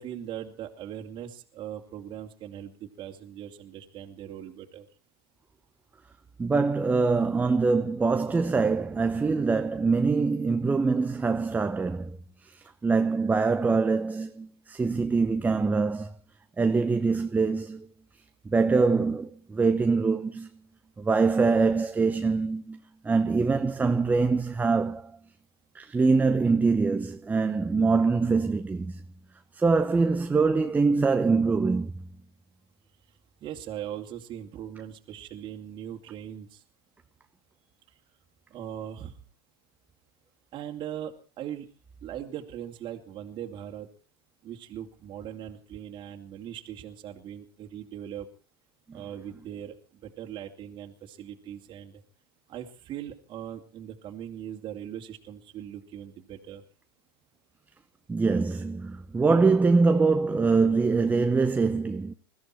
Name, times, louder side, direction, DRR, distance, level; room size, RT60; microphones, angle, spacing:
voice 1, 0.0-4.9 33.4-36.6 38.5-39.2 40.5-41.7 42.0-43.9 44.4-48.3 48.9-52.0 52.5-56.6, right 10 dB, 35° right, 2.6 m, -40 dB
voice 2, 6.4-12.2 12.4-16.1 16.6-17.9 18.4-20.5 21.0-25.1 25.7-29.0 29.5-31.9 48.9-49.0 58.1-62.1, right 4 dB, 10° right, 0.9 m, -24 dB
21.5 x 14.5 x 4.3 m
hypercardioid pair, 110°, 13 cm